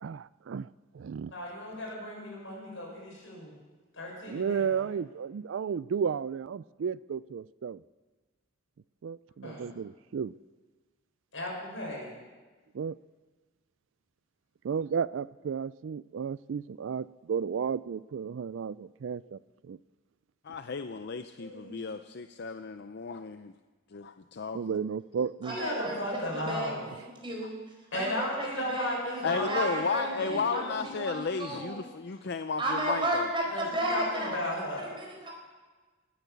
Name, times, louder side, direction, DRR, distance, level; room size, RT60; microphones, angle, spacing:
voice 1, 0.0-0.7 0.9-1.3 4.3-7.8 9.0-10.3 12.7-13.0 14.6-19.8 24.5-25.6, right 6 dB, 70° right, 19 dB, 0.4 m, -33 dB
voice 2, 1.3-3.5 3.9-4.8 9.4-9.7 11.3-12.1 21.4-21.8 25.5-26.8 27.9-30.6 33.5-35.0, left 1 dB, 75° left, -2 dB, 6.7 m, -36 dB
voice 3, 20.4-23.5 23.9-24.8 29.2-33.3, left 5 dB, 60° left, 9 dB, 0.5 m, -34 dB
voice 4, 25.4-26.7 27.2-27.6 27.9-31.8 32.6-34.4 34.8-35.3, right 1 dB, 25° right, -1 dB, 4.7 m, -33 dB
19.0 x 10.0 x 7.0 m, 1.3 s
head